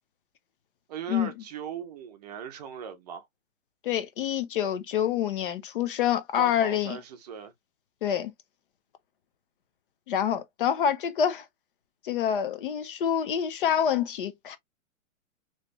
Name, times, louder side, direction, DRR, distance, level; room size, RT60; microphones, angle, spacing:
voice 1, 0.9-3.3 6.3-7.5, right 8 dB, 30° right, 0.6 m, -38 dB
voice 2, 3.8-7.0 8.0-8.3 10.1-11.4 12.0-14.6, left 9 dB, 40° left, 0.6 m, -27 dB
3.3 x 3.0 x 2.7 m
hypercardioid pair, 150°, 41 cm